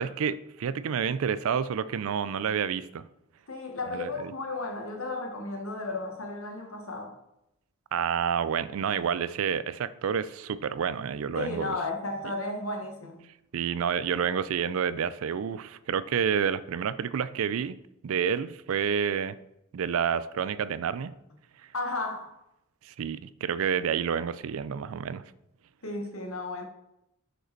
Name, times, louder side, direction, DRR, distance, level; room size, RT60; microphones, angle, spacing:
voice 1, 0.0-3.0 3.9-4.3 7.9-11.8 13.5-17.8 18.0-19.4 19.7-21.1 22.8-25.2, right 7 dB, 65° right, 0.4 m, -29 dB
voice 2, 3.5-7.1 11.3-13.2 21.7-22.3 25.8-26.6, left 2 dB, 70° left, 1.4 m, -34 dB
6.6 x 5.0 x 4.5 m
head